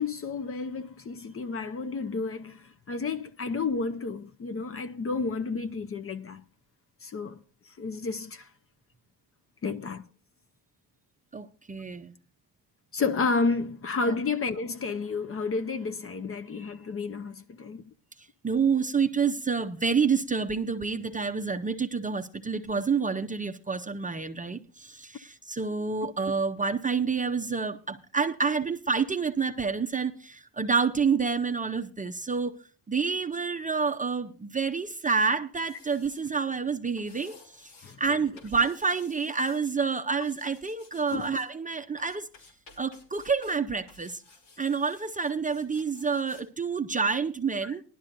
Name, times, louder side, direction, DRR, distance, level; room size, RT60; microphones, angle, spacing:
voice 1, 0.0-6.4 7.0-7.4 7.8-8.5 9.6-10.0 12.9-17.9 37.8-38.0 41.1-41.3 47.6-47.7, left 4 dB, 30° left, 0.6 m, -31 dB
voice 2, 11.3-12.1 14.0-14.2 18.4-32.6 32.9-37.7 38.0-42.3 42.8-44.2 44.6-47.8, right 5 dB, 20° right, 0.6 m, -28 dB
sound 1, 35.5-36.3 37.0-38.0 38.4-39.7 40.2-41.5 42.0-43.6 43.9-46.5 46.7-46.8, left 3 dB, 90° left, 3.2 m, -55 dB
18.5 x 11.5 x 2.6 m
cardioid pair, 100°, 43 cm